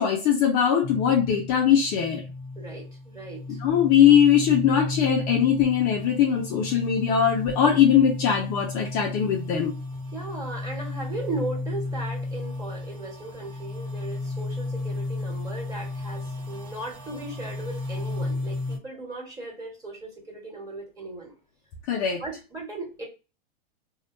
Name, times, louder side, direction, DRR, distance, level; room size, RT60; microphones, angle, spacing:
voice 1, 0.0-2.2 3.6-9.7 21.9-22.2, left 8 dB, 30° left, 1 dB, 0.5 m, -21 dB
sound 1, 0.8-18.8, left 2 dB, 60° right, 1.2 m, -33 dB
voice 2, 2.5-3.6 10.1-21.3 22.2-23.0, right 2 dB, 10° right, -1 dB, 1.1 m, -37 dB
2.7 x 2.2 x 2.4 m, 0.30 s
hypercardioid pair, 135°, 29 cm